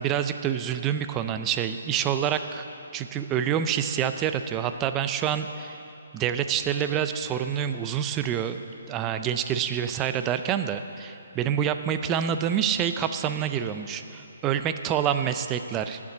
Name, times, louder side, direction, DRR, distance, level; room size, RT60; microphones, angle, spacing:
voice 1, 0.0-2.6 2.9-5.8 6.1-16.0, right 9 dB, 15° right, 9 dB, 0.4 m, -27 dB
9.2 x 7.2 x 8.3 m, 3.0 s
hypercardioid pair, 165°, 0 cm